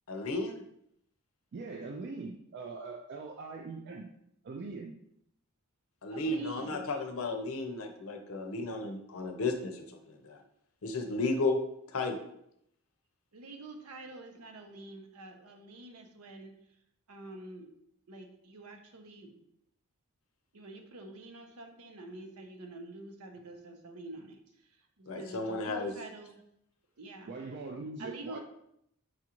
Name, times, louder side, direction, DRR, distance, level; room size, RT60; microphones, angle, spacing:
voice 1, 0.1-0.6 6.0-10.4 10.8-11.6 11.9-12.2 25.1-25.9, left 2 dB, 65° left, 5 dB, 0.6 m, -33 dB
voice 2, 1.5-4.1 4.4-4.9 27.3-28.4, right 3 dB, 50° right, 2 dB, 0.3 m, -41 dB
voice 3, 6.1-7.0 13.3-16.5 17.1-17.7 18.1-19.4 20.5-24.4 25.0-26.4 27.0-27.3 28.0-28.4, right 2 dB, 80° right, 4 dB, 0.7 m, -47 dB
6.0 x 2.4 x 2.9 m, 0.75 s
head